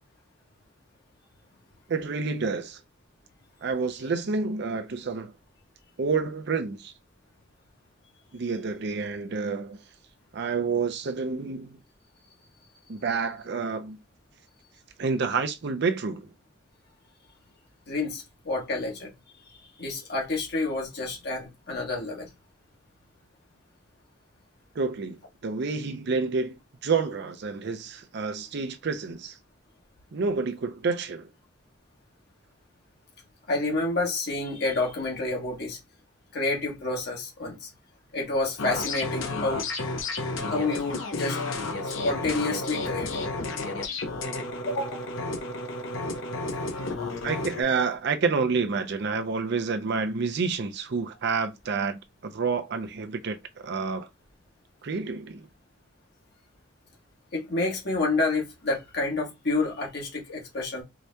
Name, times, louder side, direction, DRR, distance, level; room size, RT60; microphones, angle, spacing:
voice 1, 1.9-2.8 3.6-5.3 6.0-6.9 8.3-9.8 10.3-11.8 12.9-14.0 15.0-16.3 24.8-29.4 30.1-31.3 47.2-54.1 54.8-55.5, right 4 dB, 60° right, 0.5 m, -29 dB
voice 2, 17.9-19.1 19.8-22.3 33.5-35.8 36.3-37.7 38.1-39.6 40.5-41.4 41.8-43.3 44.7-45.1 57.3-60.8, left 2 dB, 55° left, 1.3 m, -29 dB
sound 1, 38.6-47.6, left 2 dB, 80° left, 0.8 m, -32 dB
4.6 x 2.8 x 2.2 m
head